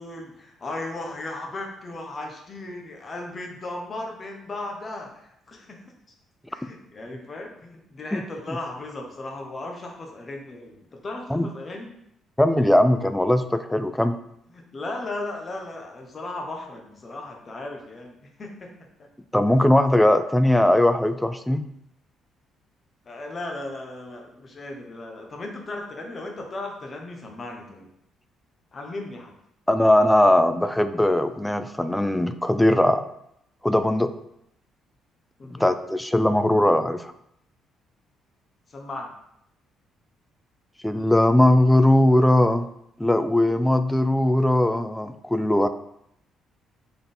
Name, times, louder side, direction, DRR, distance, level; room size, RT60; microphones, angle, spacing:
voice 1, 0.0-5.8 6.5-11.9 14.5-19.1 23.0-27.9 28.7-29.3 35.4-35.7 38.7-39.1, left 2 dB, 35° left, 2 dB, 0.9 m, -36 dB
voice 2, 12.4-14.2 19.3-21.6 29.7-33.0 33.6-34.1 35.6-37.1 40.8-42.7 43.0-45.7, left 1 dB, 5° left, 10 dB, 0.3 m, -19 dB
3.9 x 3.5 x 3.9 m, 0.77 s
cardioid pair, 100°, 0 cm